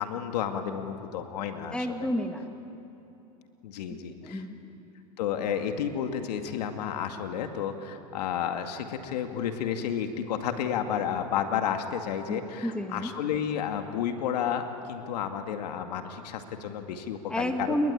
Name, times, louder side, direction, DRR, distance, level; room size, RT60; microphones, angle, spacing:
voice 1, 0.0-1.9 3.6-4.4 5.2-17.8, left 8 dB, 75° left, 6 dB, 2.2 m, -31 dB
voice 2, 1.7-2.5 3.9-4.9 12.3-13.1 17.3-17.9, equal, 5° left, 5 dB, 2.4 m, -31 dB
30.0 x 21.5 x 8.8 m, 2.9 s
hypercardioid pair, 95°, 21 cm